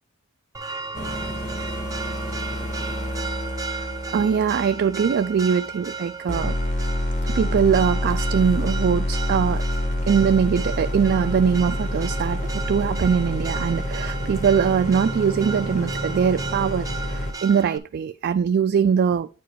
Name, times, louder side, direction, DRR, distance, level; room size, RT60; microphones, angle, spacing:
Church bell, 0.5-17.8, right 4 dB, 15° right, 0.6 m, -35 dB
sound 1, 0.9-5.9 6.3-17.3, left 1 dB, 35° left, 1.2 m, -28 dB
voice 1, 3.8-6.6 7.3-9.6 10.1-19.3, right 7 dB, 45° right, 0.3 m, -22 dB
9.1 x 4.7 x 3.4 m
head